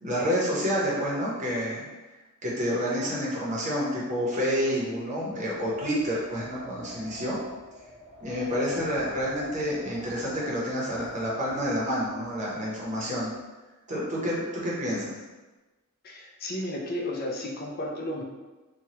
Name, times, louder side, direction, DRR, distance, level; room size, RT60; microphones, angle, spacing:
voice 1, 0.0-1.9 2.4-7.4 8.2-13.3 13.9-15.1, equal, 35° right, -5 dB, 0.7 m, -29 dB
Wind, 5.0-13.4, left 1 dB, ahead, 0.8 m, -45 dB
voice 2, 16.0-18.2, left 1 dB, 45° left, 1 dB, 0.4 m, -33 dB
3.0 x 2.2 x 2.8 m, 1.2 s
head